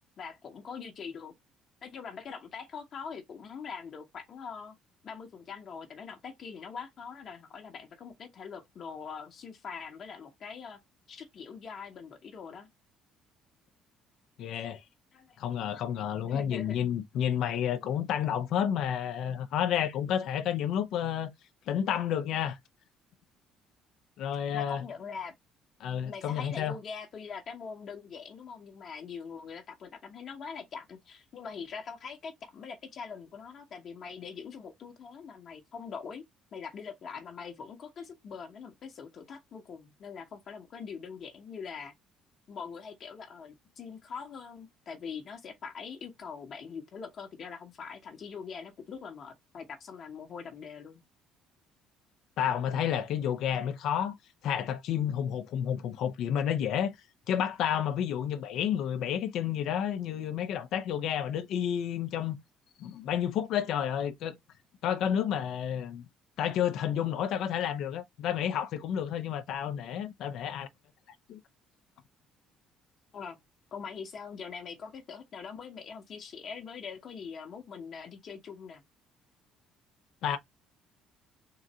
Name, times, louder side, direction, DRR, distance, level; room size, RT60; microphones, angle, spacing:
voice 1, 0.2-1.3 1.8-4.8 5.0-10.8 11.1-12.7 15.1-15.4 16.2-16.8 24.5-25.3 26.0-36.2 36.5-41.9 42.5-51.0 73.1-73.4 73.7-78.8, left 6 dB, 50° left, 1.0 m, -43 dB
voice 2, 14.4-14.8 15.4-21.3 21.7-22.6 24.2-24.8 25.8-26.7 52.4-54.2 54.4-56.9 57.3-62.4 62.8-64.4 64.8-66.0 66.4-70.7 71.3-71.4 80.2-80.4, left 9 dB, 70° left, 0.6 m, -30 dB
3.8 x 2.5 x 4.2 m
supercardioid pair, 85°, 0 cm